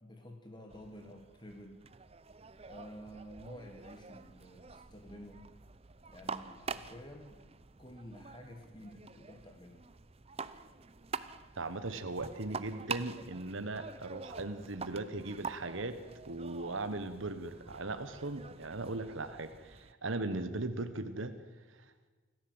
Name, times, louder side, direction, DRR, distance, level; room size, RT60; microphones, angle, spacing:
voice 1, 0.0-1.8 2.7-5.4 6.1-7.4 7.8-9.8, equal, 20° left, 4 dB, 1.6 m, -50 dB
sound 1, 0.7-19.9, right 5 dB, 30° right, 0.7 m, -46 dB
voice 2, 11.6-16.0 16.2-21.3, right 2 dB, 70° right, 10 dB, 1.3 m, -38 dB
26.5 x 14.5 x 7.9 m, 1.3 s
head